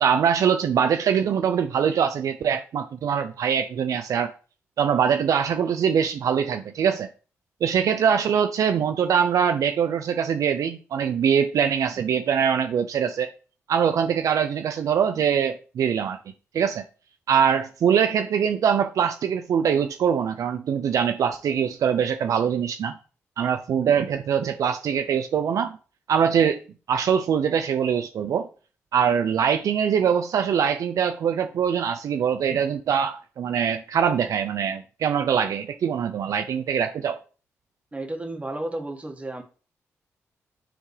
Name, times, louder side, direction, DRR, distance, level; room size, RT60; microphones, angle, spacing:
voice 1, 0.0-4.3 4.8-7.1 7.6-13.3 13.7-16.2 16.5-16.8 17.3-23.0 23.4-25.8 26.1-26.6 26.9-28.5 28.9-37.2, right 7 dB, 75° right, 0.5 m, -23 dB
voice 2, 37.9-39.4, right 1 dB, 25° right, 1.8 m, -32 dB
9.8 x 3.6 x 3.3 m
cardioid pair, 65°, 6 cm